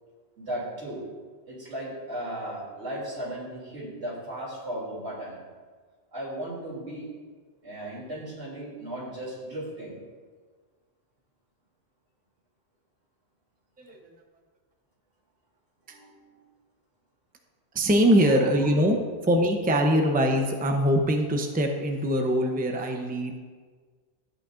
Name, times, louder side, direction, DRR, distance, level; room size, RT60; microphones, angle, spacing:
voice 1, 0.4-1.0 1.5-5.4 6.1-7.1 7.6-10.0 15.9-16.4 18.6-18.7, right 1 dB, 85° right, -6 dB, 3.2 m, -36 dB
voice 2, 17.7-19.0 19.2-23.3, equal, 10° right, 3 dB, 0.6 m, -23 dB
12.0 x 8.4 x 2.5 m, 1.5 s
omnidirectional pair, 1.1 m